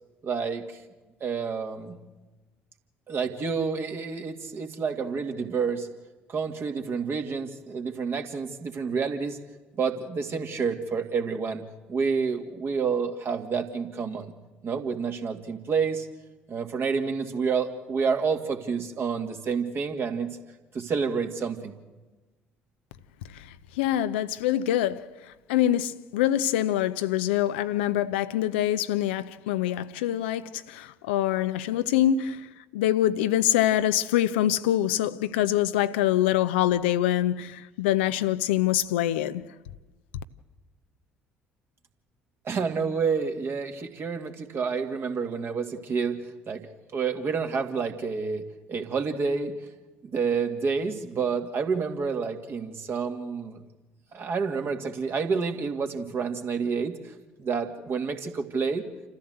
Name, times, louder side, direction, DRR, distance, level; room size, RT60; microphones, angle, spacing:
voice 1, 0.2-0.8 1.2-2.0 3.1-5.9 6.3-9.4 9.7-11.6 11.9-14.3 14.6-16.1 16.5-20.4 20.7-21.8 42.4-46.7 46.9-49.6 50.0-53.6 54.1-58.8, right 5 dB, 40° right, 2.2 m, -29 dB
voice 2, 23.3-25.2 25.5-32.5 32.7-39.4, left 12 dB, 70° left, 0.7 m, -25 dB
28.5 x 14.5 x 7.9 m
figure-of-eight pair, 55°, 6 cm